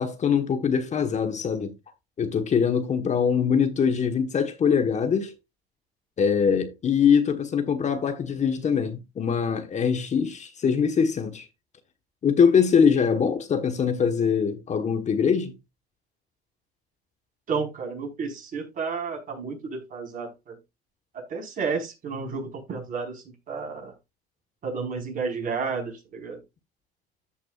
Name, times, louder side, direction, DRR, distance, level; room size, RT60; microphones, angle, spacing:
voice 1, 0.0-1.7 2.2-5.3 6.2-11.5 12.2-15.5, left 6 dB, 35° left, 1.4 m, -23 dB
voice 2, 17.5-20.6 21.1-23.9 24.6-26.4, right 5 dB, 40° right, 4.8 m, -32 dB
14.0 x 5.9 x 2.5 m
supercardioid pair, 100°, 20 cm